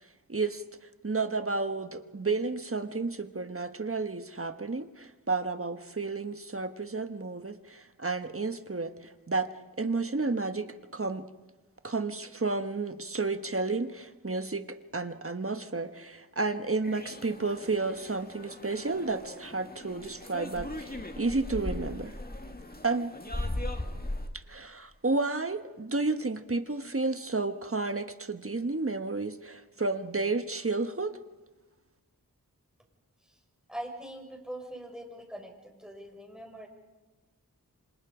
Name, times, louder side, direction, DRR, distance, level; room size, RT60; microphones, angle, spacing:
voice 1, 0.3-0.6 1.0-9.5 9.8-11.3 11.8-22.1 22.8-23.1 24.3-31.2, right 3 dB, 35° right, 9 dB, 1.4 m, -31 dB
sound 1, 16.8-24.3, left 1 dB, 25° left, 2.2 m, -38 dB
voice 2, 33.7-36.7, right 1 dB, ahead, 2 dB, 6.1 m, -42 dB
28.0 x 26.5 x 5.1 m, 1.2 s
wide cardioid pair, 55°, 37 cm